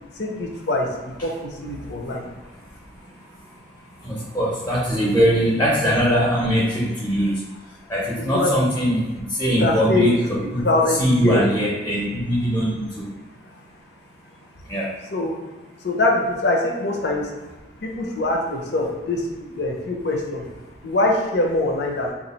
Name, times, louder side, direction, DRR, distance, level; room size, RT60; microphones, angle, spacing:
voice 1, 0.2-2.2 8.3-8.5 9.6-10.2 10.6-11.5 15.1-15.4 15.8-17.3 17.8-19.3 19.6-20.4 20.8-22.1, left 2 dB, 75° left, 0 dB, 0.7 m, -23 dB
voice 2, 1.7-10.6 10.9-13.6 14.3-15.0 15.7-15.9 20.6-20.7, equal, 10° left, -6 dB, 0.6 m, -23 dB
3.0 x 2.4 x 4.1 m, 1.2 s
head